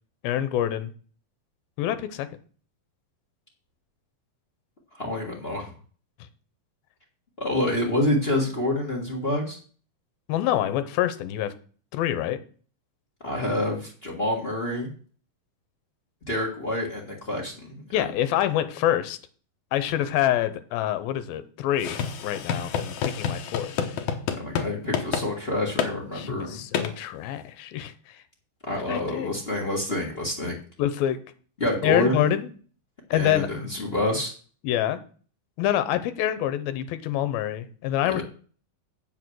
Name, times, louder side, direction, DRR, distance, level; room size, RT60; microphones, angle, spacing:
voice 1, 0.2-0.9 1.8-2.3 10.3-11.5 11.9-12.4 17.9-19.2 19.7-23.7 26.1-28.1 28.9-29.3 30.8-31.2 31.8-32.5 33.1-33.5 34.6-35.0 35.6-38.2, left 12 dB, 80° left, 12 dB, 2.6 m, -26 dB
voice 2, 4.9-5.7 7.4-9.6 13.2-14.9 16.3-18.1 24.3-26.6 28.7-30.6 31.6-32.3 33.1-34.3 38.0-38.2, left 1 dB, 45° left, 2 dB, 0.7 m, -27 dB
sound 1, 21.8-24.7 24.9-25.3 25.8-25.9 26.7-26.9, left 7 dB, 65° left, 2.0 m, -28 dB
8.4 x 7.1 x 6.3 m, 0.42 s
omnidirectional pair, 4.4 m